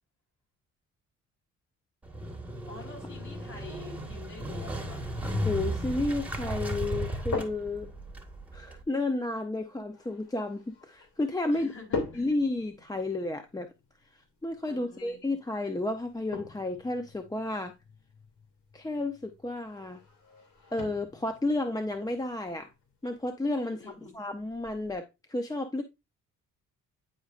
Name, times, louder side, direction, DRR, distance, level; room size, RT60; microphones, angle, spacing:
Motorcycle, 2.0-8.8, equal, 5° right, 1.6 m, -35 dB
voice 1, 2.6-5.1 11.5-12.2 14.7-15.2 23.6-24.1, left 4 dB, 40° left, 4.7 m, -47 dB
voice 2, 5.4-7.9 8.5-11.7 12.1-13.7 14.4-17.7 18.7-20.0 20.7-22.7 23.0-23.8 24.1-25.8, left 2 dB, 10° left, 0.7 m, -32 dB
sound 1, 6.9-24.9, left 4 dB, 70° left, 2.8 m, -44 dB
9.4 x 4.9 x 2.5 m
cardioid pair, 90°, 30 cm